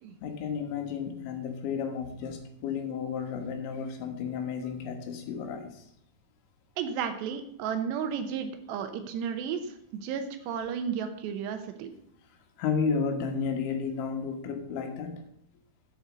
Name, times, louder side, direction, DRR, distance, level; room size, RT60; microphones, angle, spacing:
voice 1, 0.2-5.8 12.6-15.2, left 6 dB, 80° left, 5 dB, 3.7 m, -32 dB
voice 2, 6.8-9.8 10.0-11.9, right 7 dB, 75° right, 7 dB, 2.9 m, -33 dB
8.3 x 7.0 x 6.3 m, 0.74 s
omnidirectional pair, 5.2 m